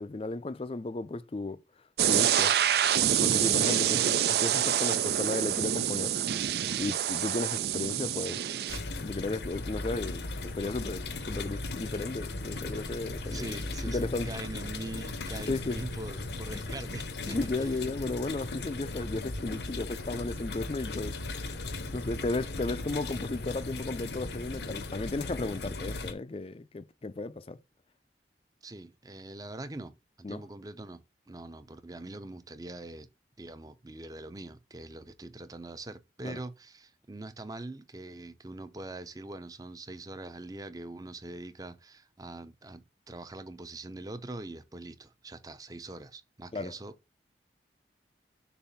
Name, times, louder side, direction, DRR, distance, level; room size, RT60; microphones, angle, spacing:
voice 1, 0.0-1.6 2.0-2.5 3.1-6.2 6.8-8.4 9.0-13.6 13.9-14.3 15.5-15.8 16.5-16.6 17.3-21.6 21.9-27.6 30.2-30.4 36.2-36.4 46.5-46.7, left 2 dB, 35° left, 0.4 m, -34 dB
sound 1, 2.0-8.8, right 10 dB, 60° right, 0.4 m, -27 dB
sound 2, 8.7-26.1, left 2 dB, 75° left, 0.9 m, -37 dB
voice 2, 13.3-17.7 28.6-33.1 33.4-47.0, right 2 dB, 20° right, 0.6 m, -43 dB
6.9 x 2.6 x 5.7 m
head